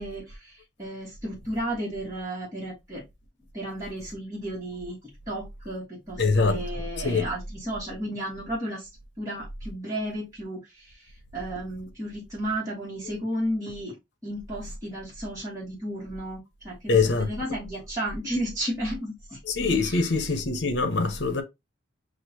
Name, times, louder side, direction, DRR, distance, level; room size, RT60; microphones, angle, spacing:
voice 1, 0.0-3.0 3.5-5.0 5.3-8.9 9.2-13.9 14.2-19.4 19.8-20.1, right 1 dB, 15° right, 1.5 m, -33 dB
voice 2, 6.2-6.6 7.0-7.3 16.9-17.3 19.4-21.4, left 4 dB, 60° left, 0.8 m, -23 dB
6.3 x 2.5 x 2.8 m
head